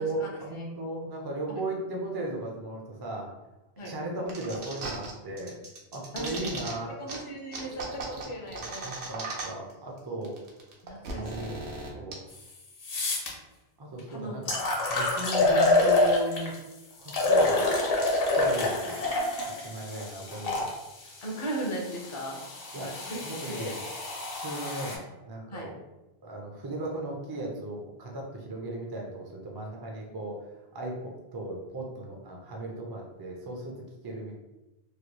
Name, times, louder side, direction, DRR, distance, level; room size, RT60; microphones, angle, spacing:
voice 1, 0.0-3.3 3.8-5.6 5.9-6.9 8.5-10.3 11.1-12.2 13.8-14.6 14.9-16.6 17.0-17.7 18.1-19.0 19.4-20.6 22.7-22.9 23.2-23.8 24.3-25.7 26.2-30.4 30.7-33.8 34.0-34.4, right 1 dB, 40° right, -1 dB, 0.3 m, -36 dB
sound 1, 4.3-5.1 5.4-6.7 7.1-7.2 7.5-9.7 10.0-10.1 10.2-12.1, right 3 dB, 85° right, 1.0 m, -37 dB
voice 2, 6.1-6.5 7.0-8.9 10.8-11.6 14.1-14.4 21.2-22.4 22.7-23.2 23.5-23.7 25.5-25.7, right 1 dB, 35° left, -1 dB, 0.5 m, -37 dB
sound 2, 12.3-12.4 12.8-13.3 14.0-14.1 14.5-16.6 17.1-20.7 21.5-25.0, left 2 dB, 65° left, 0.9 m, -27 dB
3.1 x 3.0 x 2.2 m, 1.0 s
omnidirectional pair, 1.1 m